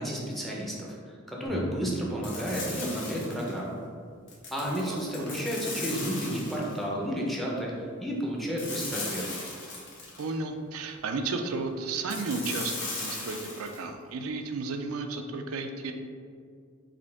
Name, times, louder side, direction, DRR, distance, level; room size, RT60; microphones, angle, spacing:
voice 1, 0.0-3.8 4.5-7.7 8.0-9.3, equal, ahead, -3 dB, 0.6 m, -32 dB
sound 1, 1.4-3.4, right 1 dB, 30° left, 1.0 m, -43 dB
sound 2, 2.2-3.6 4.3-6.8 8.6-10.3 12.1-13.8, left 3 dB, 60° left, 1.1 m, -37 dB
voice 2, 4.7-5.3 10.2-15.9, right 3 dB, 85° right, 5 dB, 0.4 m, -33 dB
5.1 x 2.8 x 3.4 m, 2.2 s
head